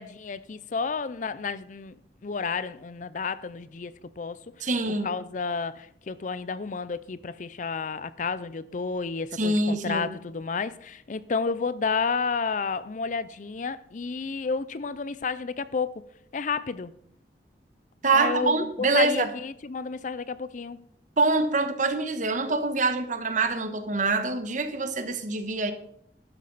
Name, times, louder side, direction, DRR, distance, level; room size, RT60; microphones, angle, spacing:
voice 1, 0.0-1.9 2.2-4.7 5.0-15.9 16.3-16.9 18.1-20.8, left 5 dB, 45° left, 0.5 m, -31 dB
voice 2, 4.6-5.1 9.4-10.1 18.0-19.3 21.2-25.7, right 3 dB, 45° right, 1.2 m, -25 dB
12.5 x 10.5 x 4.1 m
head